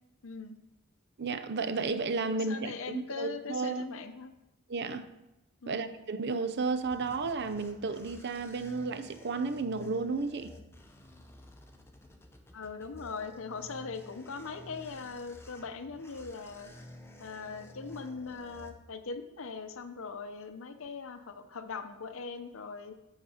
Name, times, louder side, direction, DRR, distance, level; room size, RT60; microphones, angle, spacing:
voice 1, 0.2-0.6 2.5-4.3 5.6-5.9 12.5-16.7 17.2-22.9, left 4 dB, 70° left, 0.7 m, -41 dB
voice 2, 1.2-3.9 4.7-5.1 5.7-10.5, right 4 dB, 55° right, 0.6 m, -33 dB
sound 1, 6.4-19.3, left 1 dB, 10° left, 0.7 m, -52 dB
8.0 x 6.5 x 5.0 m
head